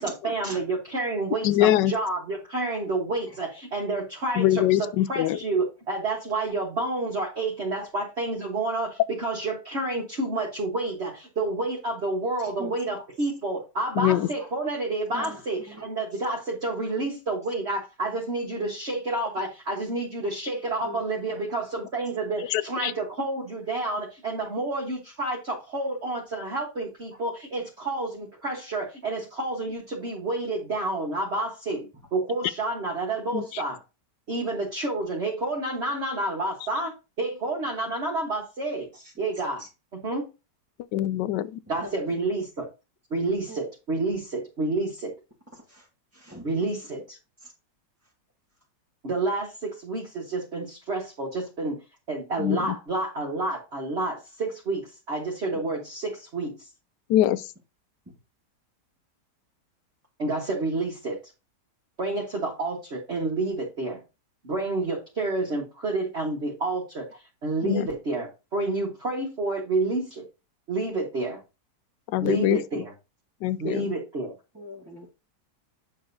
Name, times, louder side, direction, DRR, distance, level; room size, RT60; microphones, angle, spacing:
voice 1, 0.0-4.6 5.1-33.8 34.3-36.9 37.2-38.9 39.2-39.6 40.0-40.3 41.7-42.7 43.1-45.1 46.4-47.2 49.0-51.8 52.1-56.7 60.2-61.2 62.0-64.0 64.4-67.1 67.4-70.2 70.7-71.4 72.2-72.9 73.6-74.3, right 2 dB, 40° right, 1.5 m, -29 dB
voice 2, 1.4-1.9 4.3-5.4 13.9-14.3 22.5-22.9 33.3-33.6 40.9-41.6 52.4-52.8 57.1-57.5 67.6-67.9 72.1-72.8 73.4-73.9, left 13 dB, 85° left, 1.2 m, -23 dB
voice 3, 12.4-12.7 13.2-13.3 14.3-14.5 15.1-15.4 15.7-15.8 16.1-16.2 20.8-21.0 21.3-21.4 24.4-24.5 38.9-39.1 39.6-39.7 41.8-41.9 43.1-43.6 45.5-45.9 46.1-46.5 47.4-47.5 74.5-75.1, equal, 10° right, 1.2 m, -41 dB
8.6 x 6.5 x 2.7 m
omnidirectional pair, 1.9 m